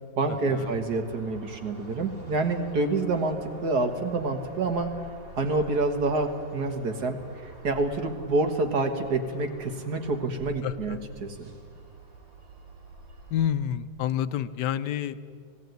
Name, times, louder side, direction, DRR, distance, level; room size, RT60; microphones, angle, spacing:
voice 1, 0.2-4.9 5.4-7.2 7.4-11.5, right 3 dB, 60° right, 6 dB, 2.0 m, -27 dB
sound 1, 0.6-13.5, right 2 dB, 90° right, 4.4 m, -48 dB
voice 2, 10.6-11.0 13.3-15.2, left 10 dB, 70° left, 13 dB, 1.2 m, -29 dB
18.0 x 17.0 x 9.2 m, 2.1 s
omnidirectional pair, 2.0 m